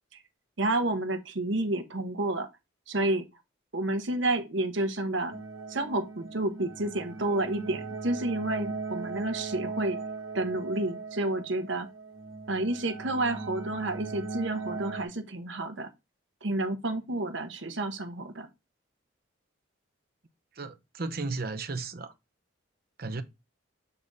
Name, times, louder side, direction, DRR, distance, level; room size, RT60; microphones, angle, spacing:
voice 1, 0.6-2.5 2.9-3.2 3.7-5.3 5.7-10.0 10.3-11.9 12.5-15.9 16.4-18.5, right 2 dB, 65° right, 1.0 m, -30 dB
sound 1, 5.3-15.1, right 4 dB, 90° right, 1.5 m, -39 dB
voice 2, 20.5-22.1 23.0-23.2, right 3 dB, 45° right, 0.7 m, -34 dB
6.9 x 3.6 x 3.9 m
head